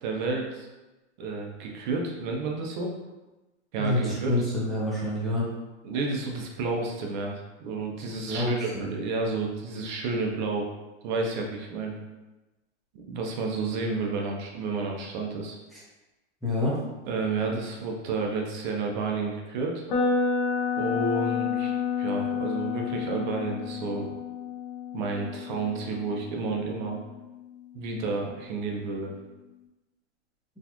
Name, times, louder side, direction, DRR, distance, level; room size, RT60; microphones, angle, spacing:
voice 1, 0.0-0.7 1.2-2.9 3.7-4.4 5.8-10.7 11.0-12.0 12.9-15.6 17.0-19.8 20.8-21.7 22.0-24.1 24.9-27.0 27.7-29.1, right 3 dB, 40° right, 1 dB, 0.6 m, -31 dB
voice 2, 3.8-5.4 8.3-8.8 16.4-16.7, left 1 dB, ahead, -8 dB, 0.6 m, -27 dB
sound 1, 19.9-27.8, left 6 dB, 45° left, 0.8 m, -30 dB
4.1 x 2.4 x 2.9 m, 1.1 s
supercardioid pair, 155°, 35 cm